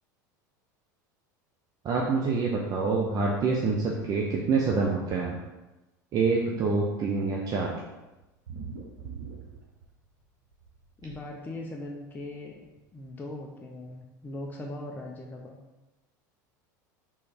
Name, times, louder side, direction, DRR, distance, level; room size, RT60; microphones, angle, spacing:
voice 1, 1.8-5.4 6.1-7.7, right 4 dB, 40° right, -2 dB, 0.7 m, -26 dB
sound 1, 8.2-10.2 10.5-11.2 12.2-12.3 12.6-12.7 13.0-13.1, right 5 dB, 90° right, 1.0 m, -42 dB
voice 2, 11.0-12.7 12.9-15.6, left 1 dB, 20° left, 0 dB, 0.6 m, -39 dB
3.7 x 3.3 x 4.3 m, 1.1 s
hypercardioid pair, 95°, 10 cm